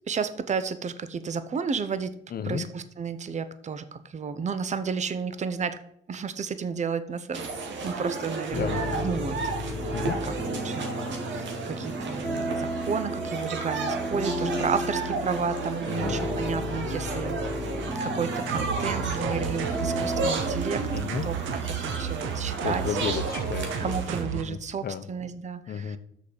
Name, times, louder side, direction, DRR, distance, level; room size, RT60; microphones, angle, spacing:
voice 1, 0.1-2.1 2.4-5.8 6.1-7.5 7.8-9.4 10.2-10.9 11.2-17.4 18.0-20.9 21.2-23.0 23.8-26.0, right 5 dB, 35° right, 12 dB, 0.8 m, -32 dB
voice 2, 2.3-2.7 8.5-8.8 9.9-10.2 15.9-16.2 20.9-21.2 22.6-24.0 24.3-25.1 25.7-26.0, left 7 dB, 50° left, 12 dB, 0.8 m, -33 dB
sound 1, 7.3-24.2, right 3 dB, 70° right, 1.7 m, -33 dB
sound 2, 8.5-20.3, equal, 5° right, 2.3 m, -33 dB
sound 3, 18.5-24.4, right 8 dB, 85° right, 1.1 m, -33 dB
6.5 x 5.1 x 7.0 m, 0.74 s
cardioid pair, 90°, 20 cm